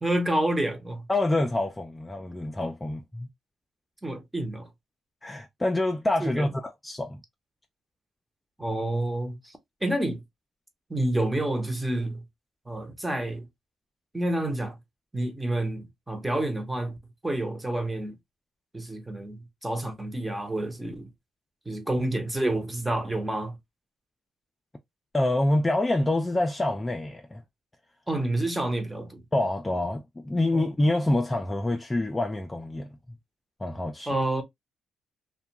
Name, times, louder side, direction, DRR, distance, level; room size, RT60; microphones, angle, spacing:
voice 1, 0.0-1.1 4.0-4.7 6.2-6.5 8.6-10.2 10.9-12.2 12.7-13.5 14.1-14.8 15.1-17.0 17.2-18.2 18.7-21.1 21.7-23.6 28.1-29.2 30.5-30.7 34.1-34.4, right 1 dB, 10° right, 0.7 m, -29 dB
voice 2, 1.1-3.3 5.2-7.2 25.1-27.4 29.3-32.9 33.6-34.1, left 1 dB, 15° left, 0.4 m, -26 dB
2.4 x 2.2 x 2.8 m
cardioid pair, 90°, 0 cm